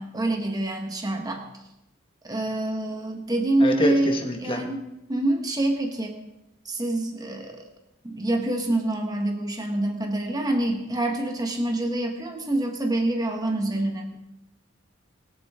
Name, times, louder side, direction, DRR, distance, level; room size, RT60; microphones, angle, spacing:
voice 1, 0.0-1.4 2.2-4.8 5.1-6.2 6.6-7.6 8.0-14.2, right 1 dB, 20° right, 2 dB, 1.4 m, -26 dB
voice 2, 3.6-4.6, equal, 25° left, 3 dB, 1.6 m, -26 dB
21.5 x 8.6 x 3.7 m, 0.92 s
head